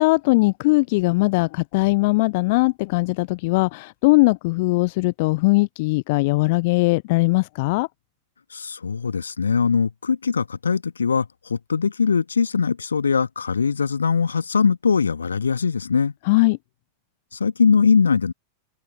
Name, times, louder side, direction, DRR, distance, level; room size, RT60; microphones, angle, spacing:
voice 1, 0.0-7.9 16.3-16.6, left 24 dB, 50° left, 0.4 m, -20 dB
voice 2, 8.5-16.1 17.3-18.3, left 5 dB, 75° left, 1.9 m, -21 dB
open air
figure-of-eight pair, 90°, 0 cm